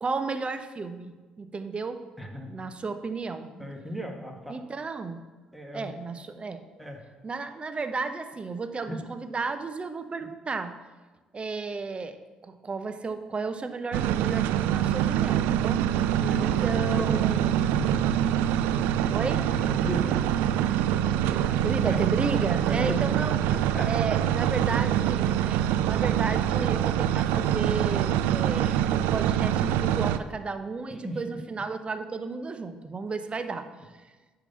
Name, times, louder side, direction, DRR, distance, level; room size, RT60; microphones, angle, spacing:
voice 1, 0.0-2.0 2.4-3.5 4.5-5.2 5.7-6.6 7.2-10.7 11.3-12.2 12.4-15.8 16.4-17.7 18.8-18.9 19.1-19.4 21.6-23.4 23.8-33.7, right 4 dB, 30° right, 10 dB, 0.8 m, -33 dB
voice 2, 2.2-2.5 3.6-4.6 5.5-6.0 6.8-7.0 8.9-9.0 10.2-10.3 16.1-17.4 17.7-18.0 18.4-18.5 19.3-20.2 21.0-21.6 21.9-22.0 22.5-23.0 23.5-23.9 30.9-31.4, equal, ahead, 2 dB, 1.7 m, -37 dB
sound 1, 13.9-30.2, right 11 dB, 65° right, 0.3 m, -25 dB
10.5 x 3.8 x 6.9 m, 1.3 s
figure-of-eight pair, 45°, 4 cm